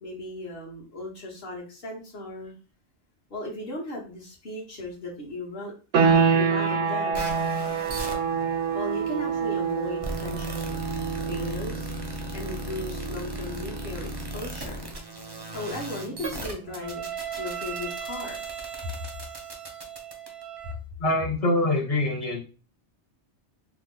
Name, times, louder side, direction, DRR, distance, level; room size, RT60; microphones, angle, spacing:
voice 1, 0.0-2.5 3.3-5.7 6.1-7.3 8.7-10.7 11.2-11.9 12.3-14.8 15.5-17.1 17.4-18.4, left 2 dB, 55° left, -2 dB, 1.2 m, -36 dB
sound 1, 5.9-16.4, right 6 dB, 90° right, 0.9 m, -28 dB
sound 2, 7.1-20.7, right 2 dB, 35° right, 0.4 m, -37 dB
voice 2, 21.0-22.4, left 2 dB, 40° left, -1 dB, 0.7 m, -24 dB
2.9 x 2.0 x 3.6 m, 0.35 s
omnidirectional pair, 1.2 m